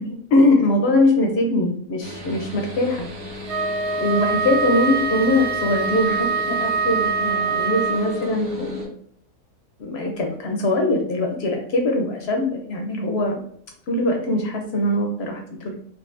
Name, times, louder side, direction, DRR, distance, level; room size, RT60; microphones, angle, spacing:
voice 1, 0.0-3.1 4.0-8.9 9.8-13.4 13.9-15.8, left 1 dB, 65° left, 2 dB, 0.6 m, -22 dB
sound 1, 2.0-8.9, left 3 dB, 50° right, 0.9 m, -34 dB
Wind instrument woodwind instrument, 3.5-8.3, right 5 dB, 80° right, 1.2 m, -24 dB
3.7 x 2.5 x 2.4 m, 0.63 s
omnidirectional pair, 1.7 m